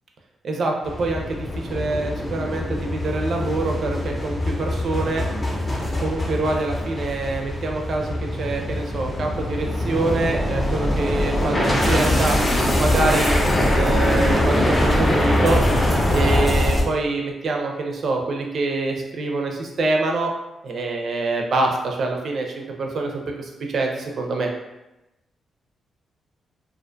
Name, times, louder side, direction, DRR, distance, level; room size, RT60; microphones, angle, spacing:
sound 1, 0.8-16.8, left 1 dB, 20° left, 0.5 m, -22 dB
voice 1, 1.0-5.2 6.0-12.4 12.8-15.6 16.1-20.3 20.6-24.5, right 3 dB, 55° right, 1 dB, 0.4 m, -25 dB
2.4 x 2.2 x 2.5 m, 0.96 s
cardioid pair, 110°, 0 cm